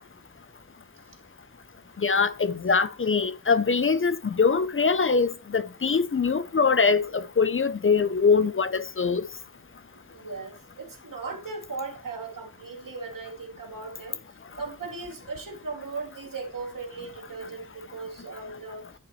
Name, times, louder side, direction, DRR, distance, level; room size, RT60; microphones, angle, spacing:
voice 1, 2.0-9.2, left 5 dB, 40° left, 0.5 m, -23 dB
voice 2, 10.0-14.2 14.6-18.9, right 4 dB, 80° right, 2.3 m, -37 dB
10.5 x 6.8 x 3.0 m
wide cardioid pair, 85°, 33 cm